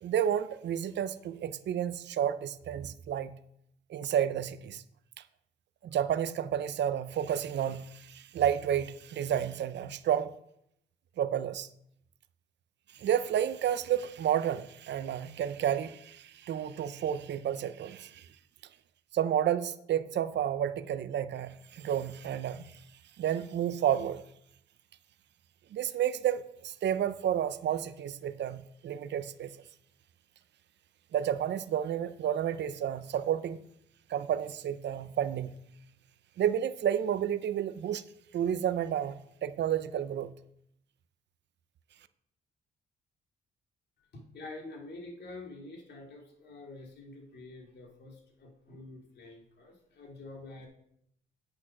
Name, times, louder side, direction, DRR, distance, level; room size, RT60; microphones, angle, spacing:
voice 1, 0.0-3.3 3.9-4.8 5.8-10.3 11.2-11.7 12.9-18.3 19.1-22.8 23.2-24.2 25.7-29.5 31.1-33.6 34.1-35.6 36.4-38.0 38.3-39.2 39.4-40.3, right 10 dB, 60° right, 0.7 m, -31 dB
voice 2, 44.1-50.7, left 2 dB, 60° left, 3.1 m, -47 dB
8.4 x 6.7 x 6.1 m
cardioid pair, 90°, 20 cm